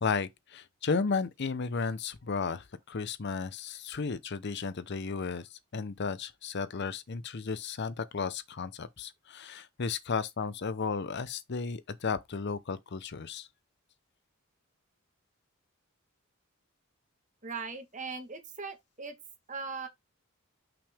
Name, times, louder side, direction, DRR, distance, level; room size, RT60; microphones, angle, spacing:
voice 1, 0.0-13.5, left 5 dB, 50° left, 0.6 m, -34 dB
voice 2, 17.4-19.1 19.5-19.9, right 4 dB, 35° right, 1.5 m, -39 dB
5.9 x 5.1 x 3.5 m
head